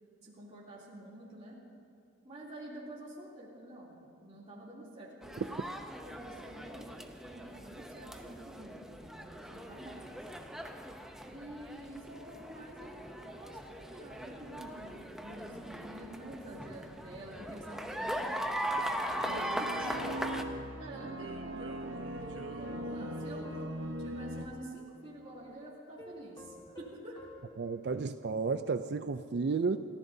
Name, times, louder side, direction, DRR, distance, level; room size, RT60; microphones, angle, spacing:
voice 1, 0.2-1.6 2.2-5.6 6.0-10.2 11.3-20.5 20.8-23.5 24.0-27.2, right 1 dB, 30° right, -6 dB, 3.0 m, -48 dB
sound 1, 5.2-20.4, equal, ahead, 0.6 m, -40 dB
sound 2, 19.2-24.5, right 1 dB, 70° right, 0.9 m, -40 dB
sound 3, 22.2-24.8 25.2-25.3 26.0-28.5 28.9-29.0, equal, 20° left, 1.7 m, -54 dB
voice 2, 27.6-29.8, right 4 dB, 55° right, 10 dB, 0.4 m, -32 dB
29.5 x 14.5 x 2.7 m, 2.6 s
head